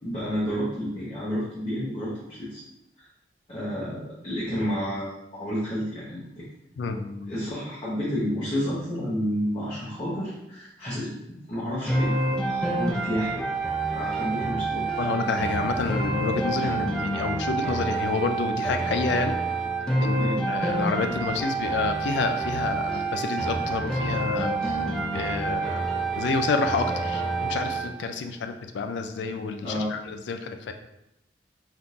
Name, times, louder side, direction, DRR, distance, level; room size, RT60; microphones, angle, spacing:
voice 1, 0.0-2.6 3.0-3.1 3.5-6.4 7.3-12.1 12.4-13.4 13.9-15.0 20.2-20.4 29.6-29.9, equal, 30° left, -10 dB, 0.8 m, -30 dB
voice 2, 6.8-7.3 15.0-19.3 20.0-24.8 25.1-25.9 26.1-30.7, left 4 dB, 75° left, 6 dB, 0.3 m, -29 dB
sound 1, 11.9-27.9, right 3 dB, 5° left, 0.4 m, -28 dB
3.6 x 2.8 x 2.4 m, 0.86 s
head